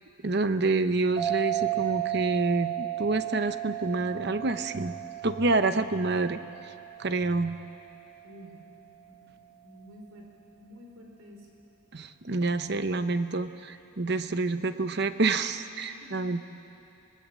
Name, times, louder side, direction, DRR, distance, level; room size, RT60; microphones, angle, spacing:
voice 1, 0.2-4.9 5.2-6.4 7.0-7.6 11.9-16.4, right 3 dB, 50° right, 10 dB, 0.9 m, -27 dB
sound 1, 1.2-8.2, right 14 dB, 30° right, 2.5 m, -34 dB
voice 2, 8.2-8.7 9.1-9.4 9.6-10.3 10.6-11.5 15.8-16.2, equal, 90° right, 0 dB, 4.7 m, -50 dB
26.0 x 21.0 x 7.5 m, 2.8 s
head